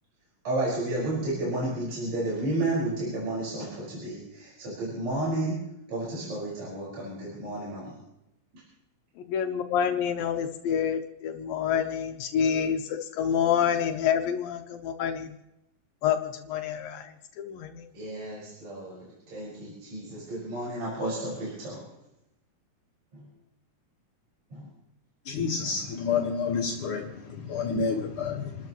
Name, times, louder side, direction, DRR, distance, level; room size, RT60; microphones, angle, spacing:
voice 1, 0.4-5.6 5.9-8.0 8.5-8.6 17.9-21.8 23.1-23.3 24.5-24.7 25.6-25.8, right 1 dB, 50° right, -6 dB, 6.4 m, -32 dB
voice 2, 9.3-15.3 16.0-17.9, left 8 dB, 85° left, 6 dB, 2.6 m, -28 dB
voice 3, 25.3-28.6, left 5 dB, 65° left, -1 dB, 2.9 m, -29 dB
29.0 x 13.0 x 3.1 m, 0.87 s
omnidirectional pair, 4.1 m